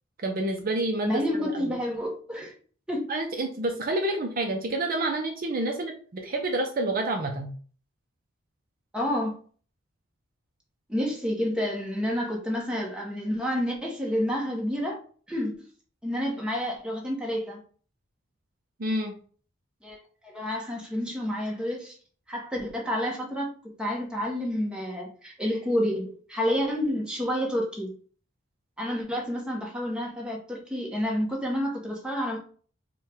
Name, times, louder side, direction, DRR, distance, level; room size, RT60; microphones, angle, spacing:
voice 1, 0.2-1.8 3.1-7.5 18.8-19.1, right 2 dB, 45° right, 2 dB, 0.5 m, -28 dB
voice 2, 1.0-2.5 2.9-3.1 8.9-9.3 10.9-15.0 15.3-15.5 16.0-17.6 19.8-20.0 20.2-21.9 22.3-28.0 28.8-32.4, equal, 5° right, -1 dB, 0.9 m, -29 dB
4.4 x 2.3 x 3.4 m, 0.43 s
head